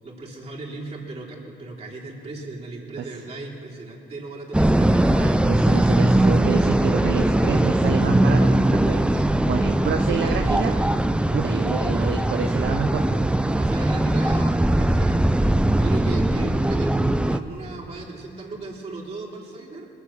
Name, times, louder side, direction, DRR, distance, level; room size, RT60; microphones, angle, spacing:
voice 1, 0.0-5.1 13.4-15.2 15.7-19.9, right 3 dB, 30° right, -5 dB, 3.4 m, -37 dB
sound 1, 4.5-17.4, right 1 dB, 5° right, 0.4 m, -20 dB
voice 2, 5.1-10.8 11.1-13.4, right 7 dB, 60° right, 4 dB, 0.7 m, -28 dB
21.0 x 7.4 x 7.1 m, 2.6 s
cardioid pair, 90°, 20 cm